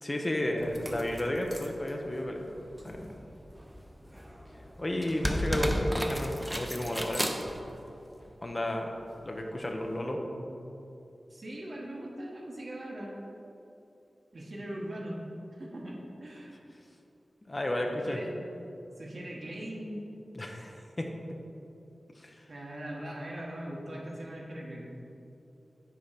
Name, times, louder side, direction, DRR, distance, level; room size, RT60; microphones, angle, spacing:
voice 1, 0.0-2.5 2.8-3.2 4.8-7.2 8.4-8.9 9.2-10.2 17.5-18.2 20.4-21.1 22.2-22.4, left 1 dB, 30° left, 2 dB, 0.7 m, -32 dB
sound 1, 0.6-8.3 9.2-9.3, equal, 10° right, 0.7 m, -36 dB
voice 2, 10.1-10.5 11.3-13.2 14.3-15.2 15.5-16.6 17.9-18.4 19.0-20.0 22.5-24.9, right 1 dB, 55° right, -3 dB, 1.5 m, -40 dB
8.4 x 3.8 x 5.9 m, 2.8 s
wide cardioid pair, 75°, 0 cm